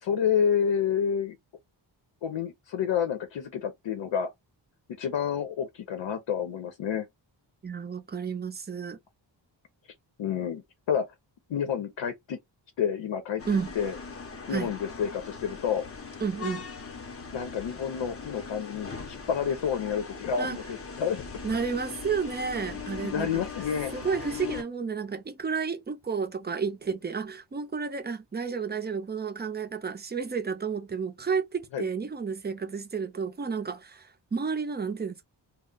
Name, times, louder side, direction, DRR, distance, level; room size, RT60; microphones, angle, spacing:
voice 1, 0.0-1.4 2.2-4.3 5.0-7.1 10.2-11.1 11.5-12.4 12.8-13.4 13.8-14.0 14.5-15.9 17.3-21.2 23.0-23.9 31.7-31.8, left 7 dB, 80° left, 0.8 m, -29 dB
voice 2, 7.6-9.0 13.5-13.7 14.5-14.7 16.2-16.6 20.4-20.6 21.4-23.4 23.9-35.2, right 5 dB, 25° right, 0.4 m, -31 dB
sound 1, 13.4-24.6, left 5 dB, 30° left, 0.6 m, -40 dB
2.3 x 2.0 x 3.7 m
wide cardioid pair, 155°, 45 cm